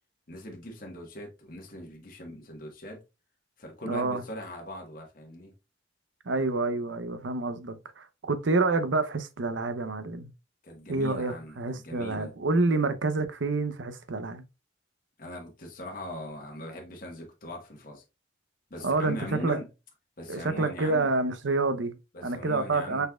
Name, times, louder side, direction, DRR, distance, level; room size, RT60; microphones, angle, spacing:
voice 1, 0.3-3.0 3.6-5.5 10.6-12.3 15.2-18.0 18.7-19.7 20.2-21.1 22.1-23.1, left 1 dB, 50° left, 1.3 m, -40 dB
voice 2, 3.9-4.2 6.3-10.3 10.9-14.4 18.8-19.2 19.4-19.6 20.3-22.0 22.2-23.1, right 3 dB, 85° right, 0.7 m, -28 dB
5.3 x 4.2 x 2.3 m
head